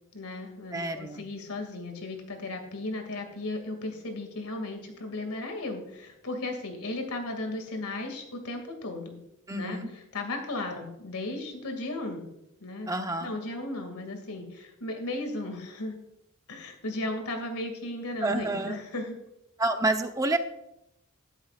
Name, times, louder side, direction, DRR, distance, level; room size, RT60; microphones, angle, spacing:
voice 1, 0.1-9.2 9.5-9.8 10.1-12.3 12.6-12.9 13.2-16.0 16.5-19.1, left 2 dB, 85° left, 4 dB, 2.3 m, -35 dB
voice 2, 0.7-1.2 9.5-9.9 12.9-13.3 18.2-18.8 19.6-20.4, right 2 dB, 15° right, 6 dB, 0.8 m, -28 dB
12.5 x 11.0 x 2.4 m, 0.83 s
head